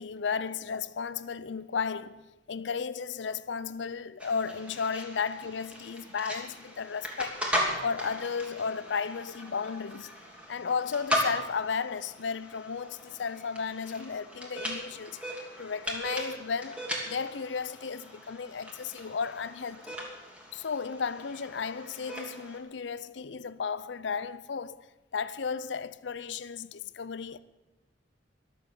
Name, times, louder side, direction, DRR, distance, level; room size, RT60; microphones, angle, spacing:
voice 1, 0.0-7.5 7.8-10.2 10.5-15.2 15.6-20.0 20.5-24.8 25.1-27.4, left 5 dB, 80° left, 0.6 m, -34 dB
sound 1, 4.2-22.6, equal, 5° right, 2.8 m, -38 dB
23.0 x 7.9 x 6.8 m
head